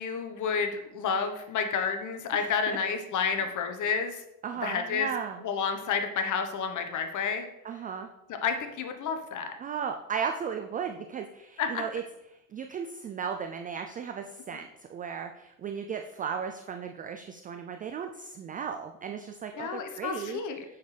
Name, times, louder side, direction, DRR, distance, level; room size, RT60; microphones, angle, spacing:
voice 1, 0.0-4.2 4.6-5.1 5.4-7.5 8.3-9.5 11.6-11.8 19.6-20.6, left 6 dB, 40° left, 6 dB, 1.1 m, -30 dB
voice 2, 2.3-2.8 4.4-5.4 7.6-8.1 9.6-12.0 12.3-20.4, right 7 dB, 20° right, 6 dB, 0.3 m, -36 dB
7.1 x 5.7 x 3.3 m, 0.88 s
hypercardioid pair, 85°, 44 cm